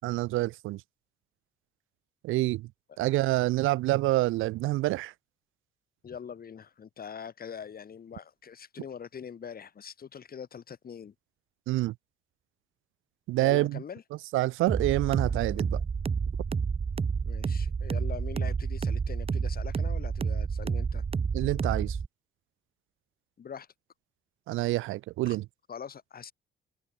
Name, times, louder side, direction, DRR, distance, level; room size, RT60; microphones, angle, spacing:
voice 1, 0.0-0.8 2.2-2.7 3.0-5.1 11.7-11.9 13.3-13.8 14.3-15.8 21.3-22.0 24.5-25.4, right 18 dB, 85° right, 0.6 m, -27 dB
voice 2, 6.0-11.1 13.4-14.0 17.2-21.0 23.4-23.7 25.3-25.4 25.7-26.3, left 7 dB, 50° left, 4.1 m, -43 dB
sound 1, 14.7-22.1, right 5 dB, 30° right, 0.8 m, -30 dB
cardioid pair, 90°, 20 cm